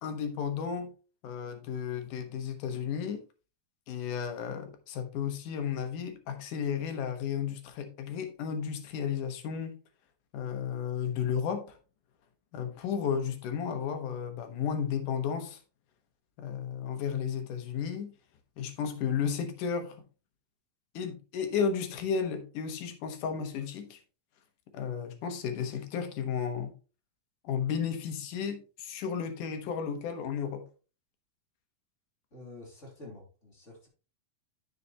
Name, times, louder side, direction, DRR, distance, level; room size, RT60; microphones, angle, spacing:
voice 1, 0.0-0.9 1.2-3.2 3.9-9.8 10.3-11.8 12.5-15.6 16.4-18.1 18.6-20.0 20.9-24.0 24.7-26.7 27.4-30.6, left 7 dB, 90° left, 2.7 m, -33 dB
voice 2, 32.3-33.9, left 2 dB, 25° left, 2.7 m, -48 dB
9.7 x 6.7 x 2.8 m
omnidirectional pair, 3.5 m